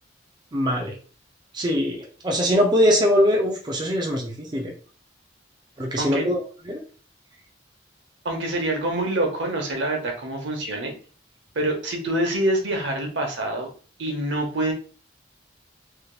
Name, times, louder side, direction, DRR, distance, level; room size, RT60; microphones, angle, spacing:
voice 1, 0.5-1.0 1.5-4.7 5.8-6.4 6.7-6.8, equal, 25° right, 0 dB, 0.5 m, -22 dB
voice 2, 8.2-10.9 11.5-13.7 14.0-14.7, right 1 dB, 70° right, 2 dB, 0.9 m, -26 dB
3.4 x 2.8 x 2.3 m, 0.38 s
head